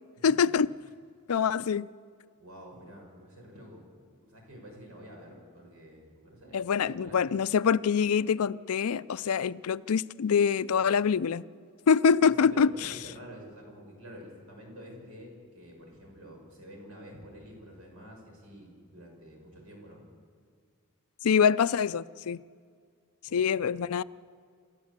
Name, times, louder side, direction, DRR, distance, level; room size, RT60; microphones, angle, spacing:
voice 1, 0.2-0.7 1.3-1.9 6.5-11.4 11.9-12.9 21.2-22.4 23.3-24.0, left 6 dB, 80° left, 0.5 m, -25 dB
voice 2, 2.4-3.8 4.1-7.3 12.5-20.0 23.2-23.6, equal, 75° right, 6.3 m, -48 dB
28.5 x 13.5 x 8.2 m
head